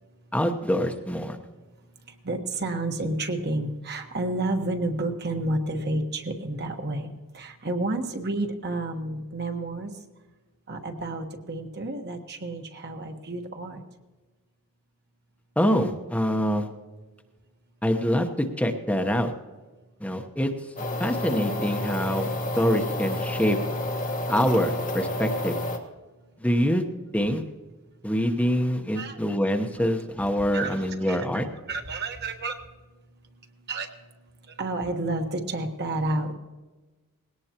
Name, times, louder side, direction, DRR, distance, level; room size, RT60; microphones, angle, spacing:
voice 1, 0.3-1.4 15.6-16.7 17.8-19.3 20.0-20.5 21.0-23.6 24.3-25.6 26.4-26.8 27.1-27.4 28.0-31.5, equal, 5° left, 4 dB, 1.0 m, -25 dB
voice 2, 2.0-9.9 10.7-13.8 28.9-29.2 29.8-29.9 30.5-31.2 31.6-32.6 33.7-33.9 34.4-36.3, right 2 dB, 50° right, 4 dB, 1.3 m, -30 dB
sound 1, 20.8-25.8, left 1 dB, 40° left, 1.4 m, -30 dB
19.5 x 17.5 x 3.0 m, 1.3 s
head